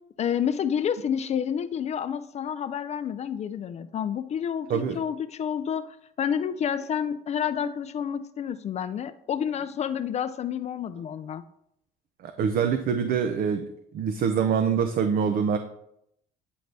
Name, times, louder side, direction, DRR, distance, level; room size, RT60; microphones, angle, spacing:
voice 1, 0.2-11.4, left 8 dB, 40° left, 12 dB, 0.4 m, -29 dB
voice 2, 4.7-5.0 12.2-13.7 13.9-15.6, right 7 dB, 60° right, 7 dB, 0.6 m, -25 dB
9.3 x 3.9 x 3.3 m, 0.75 s
cardioid pair, 110°, 17 cm